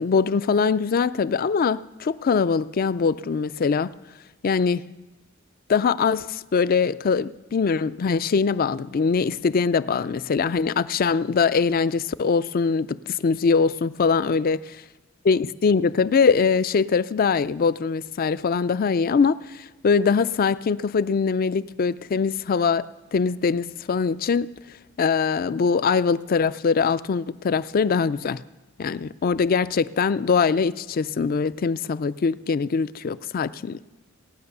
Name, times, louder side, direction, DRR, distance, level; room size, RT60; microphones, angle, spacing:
voice 1, 0.0-3.9 4.4-4.8 5.7-14.6 15.2-24.5 25.0-28.4 28.8-33.8, left 5 dB, 45° left, 0.4 m, -22 dB
18.0 x 9.4 x 6.7 m
head